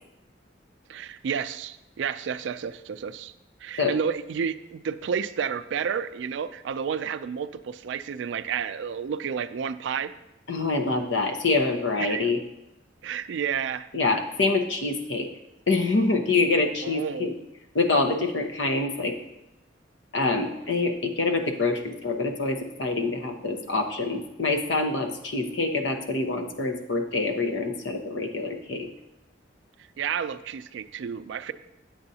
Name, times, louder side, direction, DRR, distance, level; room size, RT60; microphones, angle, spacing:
voice 1, 0.9-3.3 3.6-10.1 12.0-12.3 13.0-13.9 16.8-17.3 30.0-31.5, right 7 dB, 70° right, 13 dB, 0.3 m, -31 dB
voice 2, 10.5-12.4 13.9-15.3 15.7-17.3 17.7-19.1 20.1-28.9, left 3 dB, 75° left, 4 dB, 0.8 m, -26 dB
8.8 x 7.7 x 2.8 m, 0.90 s
head